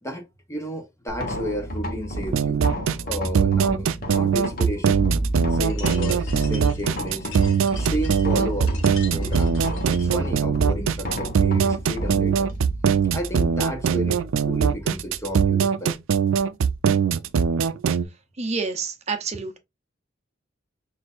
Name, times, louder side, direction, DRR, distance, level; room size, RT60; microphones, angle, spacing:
voice 1, 0.0-2.6 3.0-5.0 5.5-7.3 7.8-8.8 9.0-12.5 13.1-15.9, equal, 15° left, 0.8 m, -32 dB
sound 1, 1.1-15.3, right 1 dB, 50° left, 1.1 m, -30 dB
sound 2, 2.3-18.0, right 7 dB, 80° right, 0.4 m, -21 dB
sound 3, 5.6-10.2, left 5 dB, 85° left, 1.2 m, -42 dB
voice 2, 18.1-19.6, right 4 dB, 35° right, 0.6 m, -29 dB
6.1 x 2.6 x 2.4 m
head